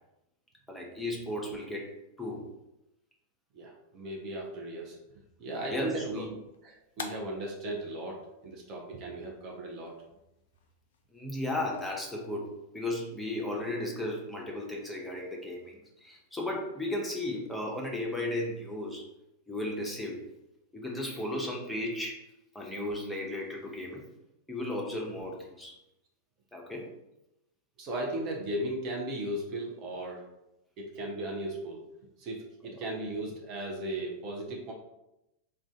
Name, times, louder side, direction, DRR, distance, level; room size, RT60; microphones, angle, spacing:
voice 1, 0.7-1.9 2.2-2.5 5.7-6.2 11.1-19.1 19.5-20.2 20.7-22.2 22.5-24.0 24.5-25.7 26.5-26.9, left 1 dB, 5° left, -2 dB, 0.7 m, -35 dB
voice 2, 3.5-5.0 5.4-6.3 6.6-9.9 27.8-30.2 30.8-31.8 32.2-34.7, right 1 dB, 35° right, -1 dB, 0.5 m, -36 dB
sound 1, 5.5-11.9, left 5 dB, 60° left, 0.3 m, -50 dB
2.5 x 2.2 x 3.6 m, 0.89 s
figure-of-eight pair, 90°, 0 cm